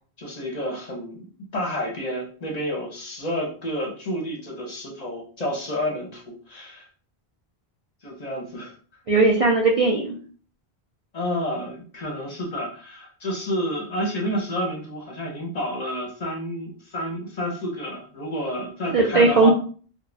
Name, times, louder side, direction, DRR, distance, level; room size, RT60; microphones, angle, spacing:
voice 1, 0.2-1.2 1.5-6.9 8.0-8.7 11.1-19.5, left 1 dB, 45° left, -1 dB, 0.7 m, -30 dB
voice 2, 9.1-10.2 18.9-19.5, right 3 dB, 50° right, -2 dB, 0.4 m, -18 dB
2.4 x 2.1 x 3.2 m, 0.41 s
omnidirectional pair, 1.0 m